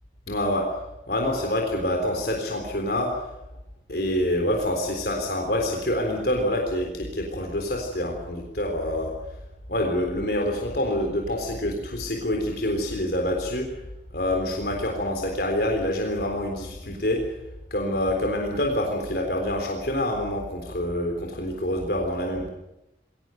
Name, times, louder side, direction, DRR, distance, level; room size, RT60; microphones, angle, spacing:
voice 1, 0.3-0.7 1.1-3.1 3.9-9.1 9.7-13.7 14.1-17.2 17.7-22.5, left 1 dB, 60° left, 2 dB, 3.8 m, -26 dB
22.0 x 18.0 x 9.2 m, 0.93 s
head